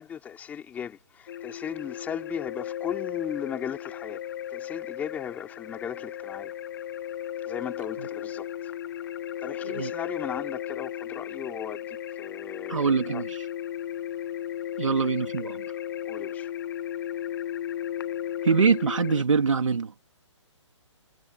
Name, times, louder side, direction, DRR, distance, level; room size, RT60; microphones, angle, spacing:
voice 1, 0.0-4.2 4.5-6.5 7.5-8.7 9.4-13.2 16.1-16.5, left 8 dB, 10° left, 4.0 m, -37 dB
sound 1, 1.3-19.2, left 11 dB, 45° left, 1.4 m, -35 dB
voice 2, 12.7-13.4 14.8-15.6 18.4-19.9, right 5 dB, 80° right, 3.1 m, -24 dB
hypercardioid pair, 160°, 16 cm